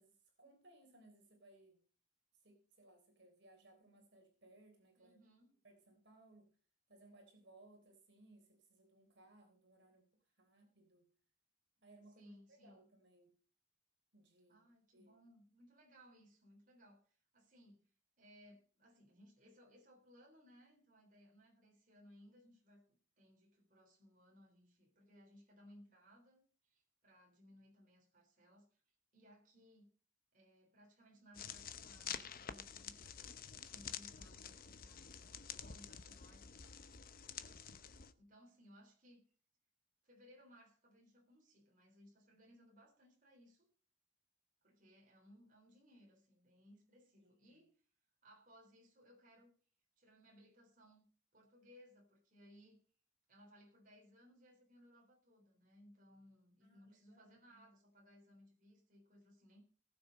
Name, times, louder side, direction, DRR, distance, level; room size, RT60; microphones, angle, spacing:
voice 1, 0.0-1.8 2.3-5.2 5.6-6.5 6.9-11.1 11.8-13.3 14.1-14.7 14.9-15.1 47.2-47.4 56.6-57.6, right 2 dB, 60° right, 2 dB, 3.7 m, -65 dB
voice 2, 5.0-5.5 12.2-12.8 14.5-17.9 18.2-29.9 30.3-33.2 33.5-36.7 38.2-39.2 40.0-43.7 44.6-47.8 48.2-49.5 50.0-51.0 51.3-52.8 53.3-59.6, equal, 40° right, 1 dB, 3.9 m, -64 dB
sound 1, 31.3-38.1, left 8 dB, 45° left, 0.8 m, -49 dB
18.5 x 6.9 x 5.3 m, 0.39 s
head